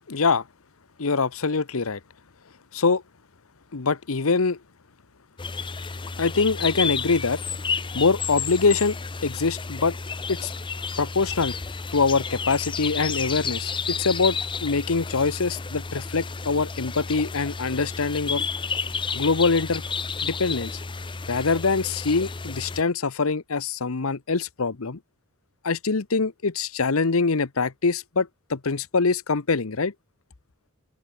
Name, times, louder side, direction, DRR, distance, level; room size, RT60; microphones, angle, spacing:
voice 1, 0.1-0.4 1.0-2.0 2.7-3.0 3.7-4.6 6.2-7.4 7.9-9.0 9.2-10.0 10.3-10.5 11.0-11.5 11.9-18.4 19.1-19.8 20.2-20.8 21.3-25.0 25.6-29.9, left 4 dB, 70° left, 0.9 m, -24 dB
sound 1, 5.4-22.8, left 5 dB, 25° left, 0.6 m, -31 dB
open air
head